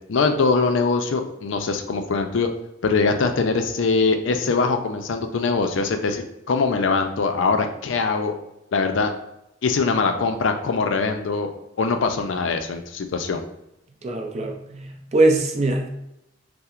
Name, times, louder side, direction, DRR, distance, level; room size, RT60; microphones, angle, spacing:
voice 1, 0.1-2.5 2.8-8.3 8.7-9.1 9.6-11.5 11.8-13.4, left 4 dB, 65° left, 6 dB, 0.4 m, -22 dB
voice 2, 14.0-15.9, right 2 dB, 35° right, 4 dB, 0.5 m, -22 dB
5.6 x 2.0 x 2.4 m, 0.84 s
head